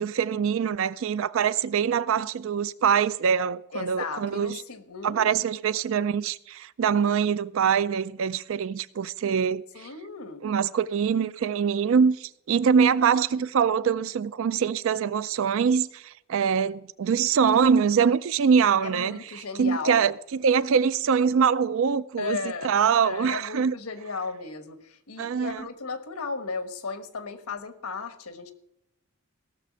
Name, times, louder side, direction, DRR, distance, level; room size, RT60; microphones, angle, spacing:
voice 1, 0.0-4.6 5.0-9.9 10.4-22.4 22.6-23.7 25.2-25.7, right 6 dB, 65° right, 0.4 m, -24 dB
voice 2, 3.7-5.3 9.7-10.4 18.8-20.1 22.2-22.7 23.0-28.5, left 4 dB, 90° left, 1.3 m, -35 dB
17.0 x 6.6 x 6.2 m
head